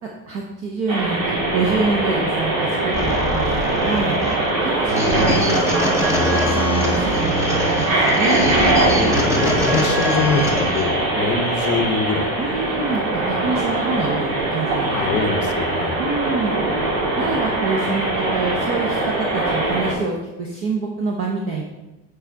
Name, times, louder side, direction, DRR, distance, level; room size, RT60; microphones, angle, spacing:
voice 1, 0.0-7.4 7.8-8.4 12.4-15.3 16.0-16.5 17.2-21.6, right 4 dB, 40° right, 0 dB, 0.9 m, -26 dB
sound 1, 0.9-19.9, right 2 dB, 75° right, 2.1 m, -22 dB
sound 2, 2.9-10.9, equal, 10° right, 0.6 m, -24 dB
voice 2, 8.8-12.4 14.9-16.0, left 5 dB, 35° left, 6 dB, 0.7 m, -24 dB
7.6 x 4.9 x 4.6 m, 1.1 s
cardioid pair, 170°, 34 cm